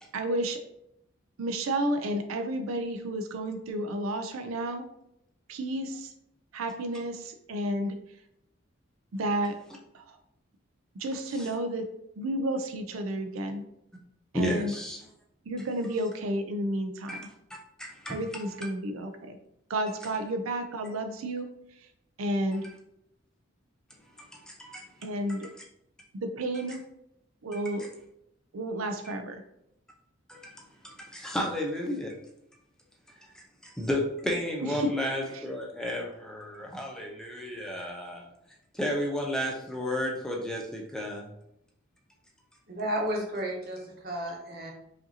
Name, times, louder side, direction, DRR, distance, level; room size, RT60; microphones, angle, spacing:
voice 1, 0.1-0.6 1.4-4.8 5.5-6.1 6.5-8.0 9.1-9.6 9.9-10.2 11.0-11.9 12.2-13.6 14.3-14.7 15.5-17.3 18.1-19.4 19.7-21.5 22.2-22.7 25.0-25.5 26.1-26.8 27.4-27.9 28.5-29.4 34.7-34.9 35.3-35.4, right 1 dB, 90° right, 6 dB, 0.5 m, -31 dB
voice 2, 14.3-15.0 17.1-17.2 17.8-18.5 24.3-24.8 27.5-27.6 30.3-30.6 30.8-32.2 33.8-38.3 38.7-41.3, left 1 dB, 5° left, -1 dB, 0.4 m, -32 dB
voice 3, 42.7-44.7, equal, 50° right, -1 dB, 0.9 m, -32 dB
4.9 x 2.7 x 2.7 m, 0.79 s
head